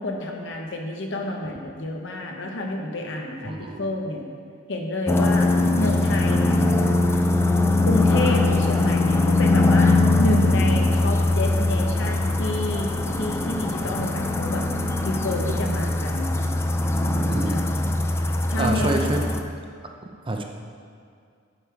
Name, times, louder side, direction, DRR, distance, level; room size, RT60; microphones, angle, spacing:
voice 1, 0.0-4.2 4.7-5.5 5.7-6.6 7.8-14.6 15.0-16.3 17.5-17.7 18.5-19.1, left 1 dB, 65° left, 1 dB, 1.0 m, -29 dB
voice 2, 3.4-3.9 12.7-12.9 17.3-17.6 18.6-19.2 20.3-20.4, right 2 dB, 25° right, 3 dB, 0.6 m, -27 dB
sound 1, 5.1-19.4, left 2 dB, 15° left, 0.4 m, -21 dB
8.6 x 6.6 x 4.7 m, 2.2 s
head